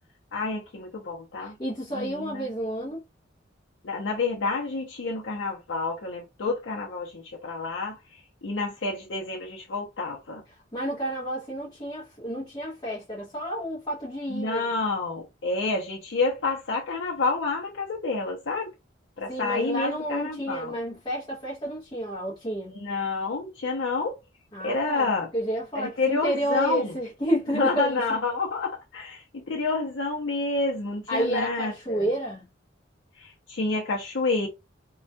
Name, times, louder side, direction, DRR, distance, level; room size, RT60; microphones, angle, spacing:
voice 1, 0.3-1.6 1.9-2.5 3.8-10.4 14.3-18.7 19.2-20.7 22.7-24.2 24.6-25.3 25.7-26.9 27.5-32.1 33.2-34.5, left 3 dB, 70° left, 0.6 m, -29 dB
voice 2, 1.4-3.0 10.7-14.7 19.3-22.8 24.5-28.0 31.1-32.5, right 1 dB, 25° left, 0.7 m, -30 dB
2.3 x 2.2 x 2.5 m
head